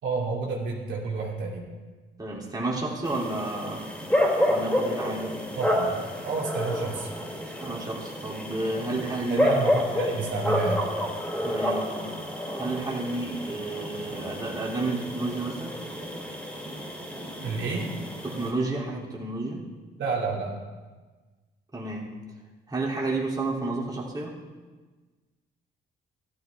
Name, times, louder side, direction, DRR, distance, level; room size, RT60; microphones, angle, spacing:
voice 1, 0.0-1.7 5.6-6.0 6.2-7.1 9.3-10.8 17.4-17.9 20.0-20.5, right 4 dB, 70° right, -2 dB, 2.7 m, -30 dB
voice 2, 2.2-3.9 4.4-5.4 7.6-9.5 11.4-11.9 12.6-15.8 18.2-19.6 21.7-22.1 22.7-24.3, right 2 dB, 20° right, -4 dB, 3.0 m, -31 dB
sound 1, 3.0-18.5, left 1 dB, 5° left, 3.7 m, -29 dB
14.5 x 12.5 x 3.6 m, 1.3 s
cardioid pair, 90°, 20 cm